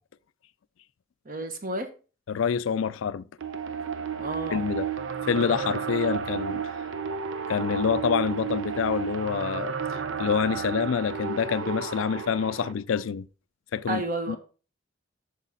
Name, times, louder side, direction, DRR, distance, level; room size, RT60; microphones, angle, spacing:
voice 1, 1.2-1.9 4.2-4.6 13.9-14.4, right 2 dB, 45° right, 1.3 m, -31 dB
voice 2, 2.3-3.3 4.5-4.9 5.2-6.7 7.5-9.7 10.2-13.3 13.7-14.0 14.3-14.4, left 7 dB, 75° left, 0.4 m, -27 dB
sound 1, 3.4-12.7, right 7 dB, 70° right, 0.7 m, -32 dB
8.3 x 7.1 x 4.0 m
head